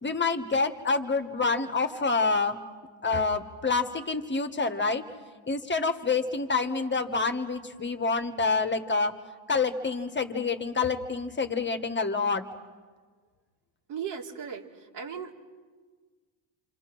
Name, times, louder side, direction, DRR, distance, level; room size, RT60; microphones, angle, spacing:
voice 1, 0.0-2.6 3.0-5.0 5.5-9.1 9.5-12.4, left 4 dB, 25° left, 7 dB, 1.5 m, -27 dB
voice 2, 13.9-15.3, right 7 dB, 70° right, 1 dB, 3.1 m, -37 dB
28.0 x 26.0 x 6.2 m, 1.5 s
cardioid pair, 100°, 44 cm